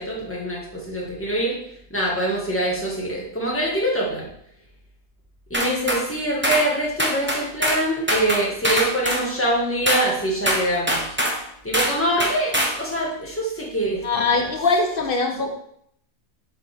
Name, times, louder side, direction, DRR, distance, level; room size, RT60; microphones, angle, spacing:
voice 1, 0.0-1.6 1.9-4.3 5.5-11.1 11.6-14.5 15.4-15.5, right 1 dB, 10° left, -4 dB, 1.8 m, -24 dB
sound 1, 5.5-6.0 6.4-6.7 7.0-9.2 9.9-10.1 10.5-11.4 11.7-12.0 12.2-12.8, equal, 10° right, 0.9 m, -22 dB
voice 2, 14.0-15.5, left 3 dB, 40° left, 2 dB, 1.1 m, -21 dB
7.4 x 5.3 x 3.5 m, 0.70 s
omnidirectional pair, 1.6 m